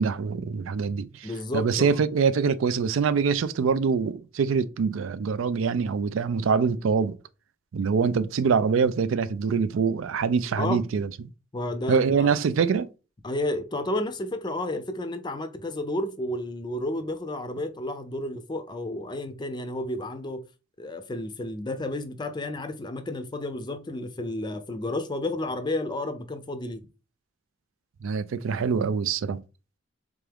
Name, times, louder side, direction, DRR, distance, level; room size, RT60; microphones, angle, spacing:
voice 1, 0.0-7.1 7.7-11.1 11.9-12.9 28.0-29.4, right 5 dB, 80° right, 0.4 m, -24 dB
voice 2, 1.2-2.0 10.6-10.8 11.5-12.3 13.2-20.4 20.8-26.8, left 1 dB, 20° left, 0.5 m, -31 dB
3.6 x 3.5 x 3.4 m
head